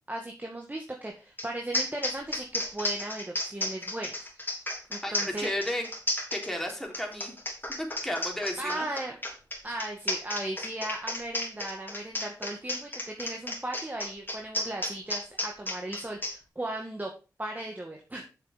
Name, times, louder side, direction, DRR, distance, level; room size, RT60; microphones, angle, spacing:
voice 1, 0.1-5.5 8.6-9.2 9.6-17.1 17.4-18.3, right 1 dB, 25° right, 1 dB, 2.0 m, -37 dB
sound 1, 1.4-1.5 1.7-16.3, left 1 dB, 30° left, 3.5 m, -33 dB
voice 2, 5.0-5.9 6.3-7.3 7.8-8.8, left 1 dB, 5° left, 0 dB, 3.6 m, -33 dB
7.8 x 6.8 x 5.1 m, 0.32 s
cardioid pair, 45°, 7 cm